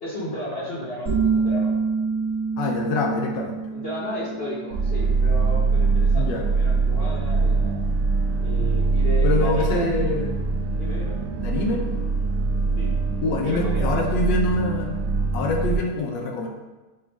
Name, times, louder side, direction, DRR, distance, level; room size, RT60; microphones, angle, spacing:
voice 1, 0.0-1.7 3.7-7.8 8.4-9.9 10.7-11.2 12.8-12.9 13.4-14.1, equal, 40° left, -7 dB, 0.9 m, -33 dB
sound 1, 1.1-6.5, right 5 dB, 40° right, 1.8 m, -27 dB
voice 2, 2.6-3.6 6.1-6.5 8.6-8.7 9.2-10.4 11.4-11.8 13.2-15.0 15.3-16.5, left 2 dB, 80° left, 1 dB, 1.3 m, -25 dB
sound 2, 4.7-15.8, right 4 dB, 85° right, 1.4 m, -23 dB
6.1 x 2.4 x 3.4 m, 1.1 s
omnidirectional pair, 2.0 m